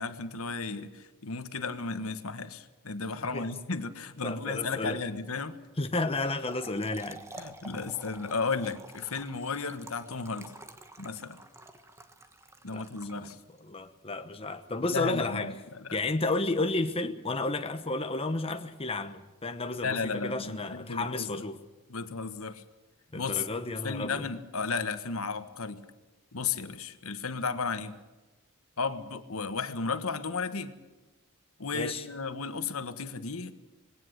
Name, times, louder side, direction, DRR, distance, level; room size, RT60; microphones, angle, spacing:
voice 1, 0.0-5.6 7.4-10.5 11.0-11.4 12.6-13.4 14.9-16.0 19.8-21.4 21.9-22.6 23.1-25.8 26.3-28.0 28.8-30.7 31.6-33.5, left 4 dB, 70° left, 10 dB, 1.3 m, -34 dB
voice 2, 4.2-5.0 5.8-7.2 12.7-12.9 13.1-13.3 13.6-15.5 15.9-21.6 23.1-24.3 31.7-32.0, left 2 dB, 25° left, 7 dB, 1.0 m, -32 dB
Trickle dribble / Fill (with liquid), 6.4-13.7, right 2 dB, 15° right, 1.3 m, -49 dB
20.5 x 18.0 x 8.0 m, 1.2 s
head